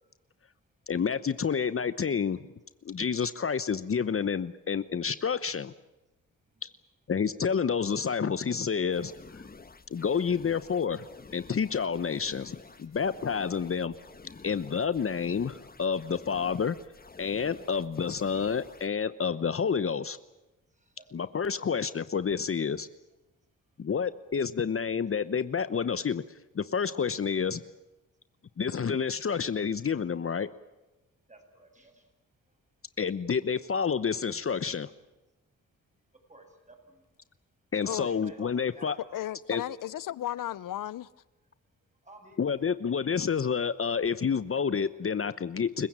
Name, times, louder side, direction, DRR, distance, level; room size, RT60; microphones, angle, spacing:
voice 1, 0.9-2.4 2.8-5.7 6.6-6.7 7.1-9.1 9.9-11.0 11.3-13.9 14.4-16.8 17.2-20.2 21.1-22.9 23.8-26.2 26.5-27.6 28.6-30.5 33.0-34.9 37.7-39.0 39.5-39.6 42.4-45.9, left 6 dB, 45° left, 14 dB, 0.9 m, -29 dB
sound 1, 8.9-18.9, left 4 dB, 30° left, 1.4 m, -50 dB
voice 2, 12.6-13.0 20.7-21.3 23.7-23.8 31.3-32.1 32.4-32.6 36.1-37.0 37.8-39.2 39.5-39.7 42.0-43.2 45.5-45.6, right 1 dB, 25° right, 4 dB, 7.3 m, -55 dB
voice 3, 39.1-41.1, left 13 dB, 90° left, 21 dB, 0.8 m, -34 dB
28.5 x 16.0 x 8.8 m, 1.1 s
cardioid pair, 80°, 32 cm